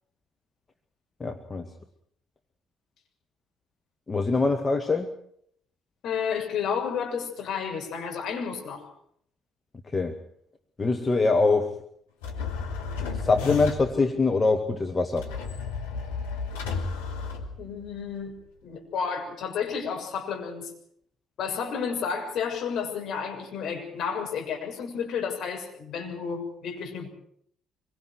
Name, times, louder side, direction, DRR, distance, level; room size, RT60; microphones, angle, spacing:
voice 1, 1.2-1.7 4.1-5.1 9.9-10.2 10.8-11.8 13.2-15.3, left 3 dB, 25° left, 6 dB, 1.9 m, -24 dB
voice 2, 6.0-8.8 17.6-18.3 18.6-20.7 21.4-27.1, left 6 dB, 55° left, 1 dB, 6.6 m, -31 dB
sound 1, 12.2-14.0 15.2-18.0, left 5 dB, 75° left, 3.2 m, -33 dB
25.5 x 23.5 x 4.7 m, 0.67 s
figure-of-eight pair, 50°, 0 cm